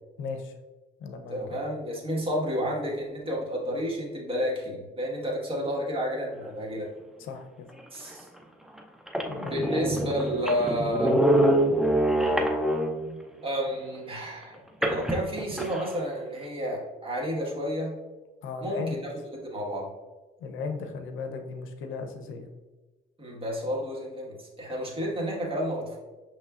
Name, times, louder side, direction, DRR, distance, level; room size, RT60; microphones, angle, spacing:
voice 1, 0.2-0.5 1.0-1.4 7.2-7.5 9.3-10.0 18.4-19.0 20.4-22.5, left 4 dB, 80° left, 6 dB, 0.6 m, -36 dB
voice 2, 1.3-6.9 7.9-8.3 9.5-11.2 13.4-17.9 18.6-19.9 23.2-26.0, equal, 25° right, -3 dB, 1.4 m, -31 dB
sound 1, 8.1-8.2 8.8-8.9 9.1-13.1 14.8-15.9, right 1 dB, ahead, 0.5 m, -25 dB
6.5 x 3.1 x 2.4 m, 1.2 s
cardioid pair, 90°, 20 cm